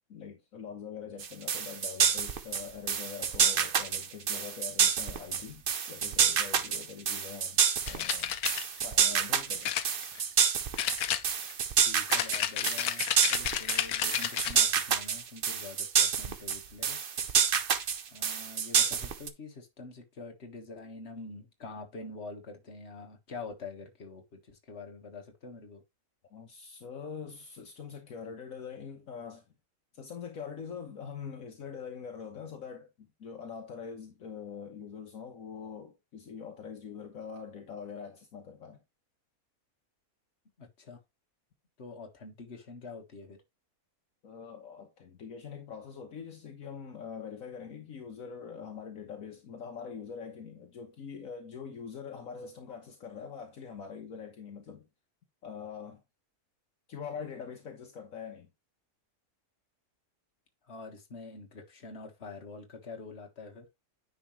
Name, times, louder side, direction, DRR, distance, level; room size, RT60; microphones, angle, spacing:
voice 1, 0.1-8.4 8.8-9.7 26.3-29.4 29.9-38.8 44.2-54.9 55.4-56.0 56.9-58.5, left 6 dB, 65° left, 1.5 m, -43 dB
sound 1, 1.2-19.3, right 7 dB, 50° right, 0.8 m, -28 dB
sound 2, 7.9-8.6 9.6-10.4 10.8-11.6 12.1-14.6, left 10 dB, 90° left, 1.3 m, -31 dB
voice 2, 11.8-17.0 17.3-17.5 18.1-25.8 40.6-41.0 41.8-43.4 60.6-63.7, left 3 dB, 50° left, 1.8 m, -46 dB
9.7 x 5.1 x 3.1 m
omnidirectional pair, 1.5 m